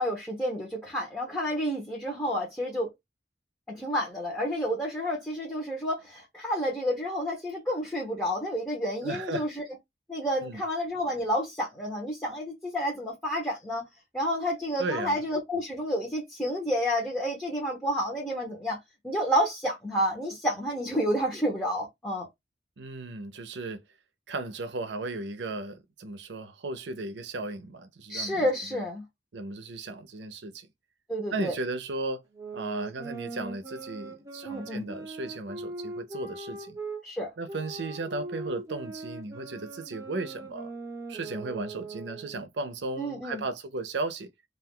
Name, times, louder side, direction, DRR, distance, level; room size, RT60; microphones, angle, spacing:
voice 1, 0.0-2.9 3.7-9.6 10.1-13.8 14.1-18.8 19.0-22.3 28.1-29.0 31.1-31.5 34.4-34.8 37.0-37.3 43.0-43.4, equal, 10° left, 0.8 m, -30 dB
voice 2, 9.0-9.5 10.4-10.6 14.8-15.2 22.8-23.8 24.3-28.8 29.3-30.7 31.3-32.2 32.5-36.8 37.4-40.7 41.1-44.3, right 2 dB, 80° right, 0.6 m, -35 dB
sound 1, 32.3-37.0 37.5-42.4, right 3 dB, 20° right, 0.7 m, -40 dB
2.4 x 2.2 x 3.6 m
head